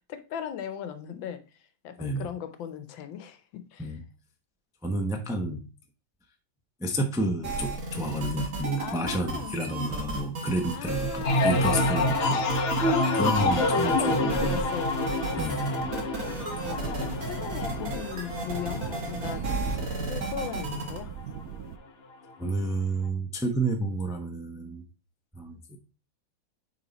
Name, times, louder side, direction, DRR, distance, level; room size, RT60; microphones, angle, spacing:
voice 1, 0.1-1.4 1.8-3.9 8.8-9.6 10.7-11.5 12.9-15.0 16.7-19.4 19.9-21.1, left 9 dB, 80° left, 1.6 m, -37 dB
voice 2, 4.8-5.6 6.8-14.6 15.4-15.9 22.4-24.8 25.3-25.8, right 1 dB, 5° right, 0.4 m, -30 dB
sound 1, 7.4-21.0, right 2 dB, 50° right, 2.1 m, -34 dB
sound 2, 11.2-20.8 21.2-21.7, left 2 dB, 50° left, 0.8 m, -28 dB
sound 3, 16.2-21.8, right 9 dB, 70° right, 0.8 m, -38 dB
9.2 x 3.8 x 4.0 m
omnidirectional pair, 2.1 m